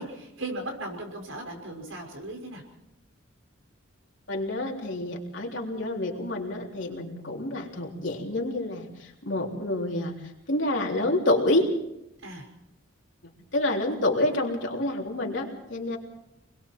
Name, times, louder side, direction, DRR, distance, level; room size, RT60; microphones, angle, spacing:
voice 1, 0.0-2.6 12.2-12.5, right 1 dB, 85° right, 2 dB, 5.9 m, -37 dB
voice 2, 4.3-10.2 10.5-11.7 13.5-16.0, left 1 dB, 65° left, 0 dB, 3.5 m, -28 dB
27.5 x 21.5 x 4.6 m, 0.84 s
head